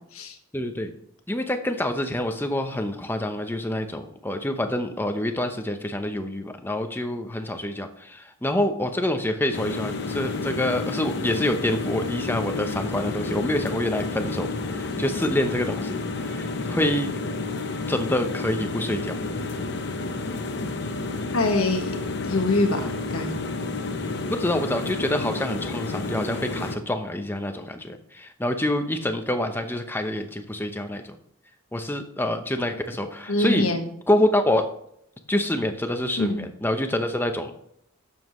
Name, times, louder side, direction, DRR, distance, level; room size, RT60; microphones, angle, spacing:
voice 1, 0.5-0.9 1.3-17.1 17.9-19.2 24.3-31.1 31.7-33.7 34.1-34.6 35.3-37.5, left 1 dB, 10° left, 6 dB, 0.7 m, -26 dB
sound 1, 9.5-26.8, left 3 dB, 50° left, 0.9 m, -30 dB
voice 2, 21.3-21.9 22.2-23.3 33.3-33.9 36.2-36.4, left 2 dB, 85° left, 5 dB, 1.5 m, -24 dB
11.5 x 7.2 x 3.1 m, 0.72 s
head